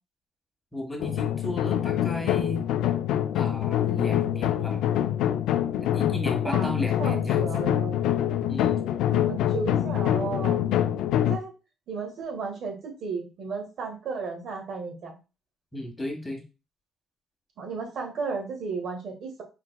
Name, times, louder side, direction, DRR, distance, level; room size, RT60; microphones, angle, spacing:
voice 1, 0.7-2.6 3.3-4.8 5.8-7.7 8.5-8.8 15.7-16.4, left 1 dB, 10° left, 1 dB, 1.5 m, -34 dB
sound 1, 1.0-11.4, left 11 dB, 90° left, 0.3 m, -25 dB
voice 2, 6.4-6.7 7.0-8.0 9.1-10.6 11.3-11.5 11.9-15.2 17.6-19.4, right 4 dB, 70° right, 1 dB, 1.5 m, -34 dB
4.4 x 3.9 x 2.2 m, 0.30 s
cardioid pair, 90°, 0 cm